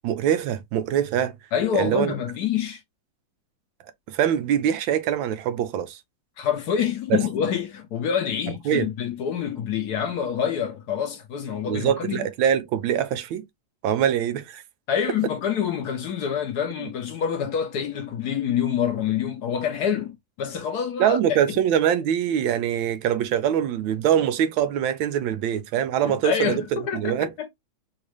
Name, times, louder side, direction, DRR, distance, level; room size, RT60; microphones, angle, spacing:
voice 1, 0.0-1.4 1.7-2.1 4.1-6.0 7.1-7.2 8.7-8.9 11.7-13.4 13.8-14.6 16.8-16.9 21.0-27.3, right 9 dB, 90° right, 1.4 m, -23 dB
voice 2, 1.5-2.8 6.4-12.2 14.9-21.4 26.0-27.5, left 8 dB, 65° left, 1.0 m, -26 dB
4.1 x 2.4 x 3.0 m
omnidirectional pair, 2.1 m